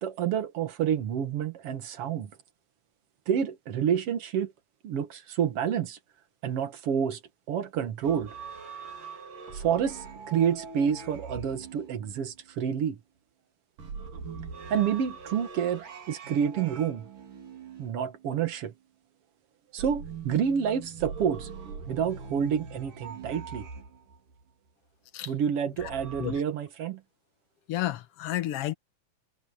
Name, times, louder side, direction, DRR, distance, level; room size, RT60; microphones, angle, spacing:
voice 1, 0.0-2.3 3.3-4.5 4.8-6.0 6.4-7.2 7.5-8.3 9.5-13.0 14.7-17.1 17.8-18.7 19.7-21.5 21.9-23.7 25.3-27.0, right 8 dB, 55° right, 2.1 m, -28 dB
sound 1, 8.0-12.6 13.8-18.6 19.8-24.4 25.8-26.4, right 5 dB, 85° right, 5.0 m, -42 dB
voice 2, 27.7-28.7, left 14 dB, 65° left, 1.6 m, -31 dB
omnidirectional pair, 3.7 m